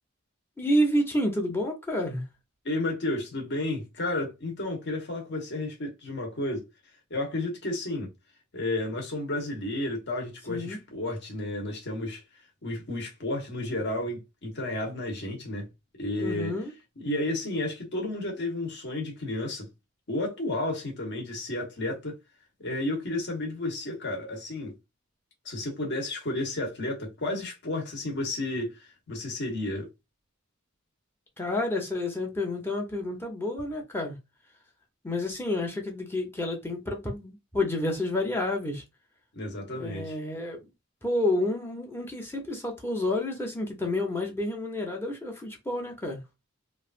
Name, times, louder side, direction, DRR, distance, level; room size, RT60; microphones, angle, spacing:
voice 1, 0.6-2.2 10.5-10.8 16.2-16.7 31.4-34.2 35.0-38.8 39.7-40.6 41.0-46.2, left 1 dB, 10° left, 0.7 m, -29 dB
voice 2, 2.6-6.6 7.1-8.1 8.5-12.2 12.6-15.7 16.0-16.5 17.0-19.7 20.1-22.1 22.6-24.8 25.4-29.9 39.3-40.2, left 2 dB, 55° left, 1.2 m, -32 dB
3.2 x 2.5 x 2.5 m
head